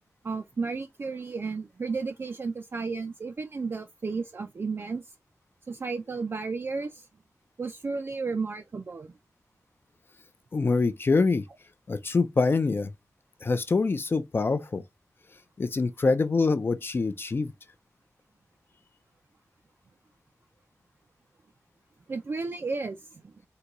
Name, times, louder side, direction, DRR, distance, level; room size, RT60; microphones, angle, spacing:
voice 1, 0.2-5.1 5.7-7.1 7.6-9.1 22.1-23.5, right 4 dB, 45° right, 0.3 m, -33 dB
voice 2, 10.5-11.4 11.9-12.9 13.4-14.8 15.6-17.5, left 4 dB, 40° left, 0.4 m, -25 dB
3.8 x 2.2 x 2.9 m
wide cardioid pair, 105°, 6 cm